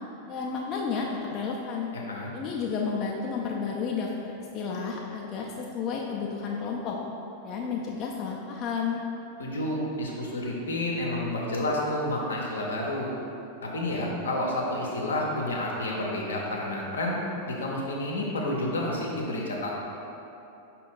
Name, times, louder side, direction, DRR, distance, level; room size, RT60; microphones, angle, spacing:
voice 1, 0.3-1.9 2.3-7.0 7.4-9.0, left 5 dB, 35° left, -2 dB, 0.3 m, -31 dB
voice 2, 1.9-2.3 9.4-13.1 13.6-19.7, left 1 dB, 70° left, -2 dB, 0.6 m, -30 dB
5.1 x 2.2 x 3.7 m, 2.8 s
figure-of-eight pair, 90°, 0 cm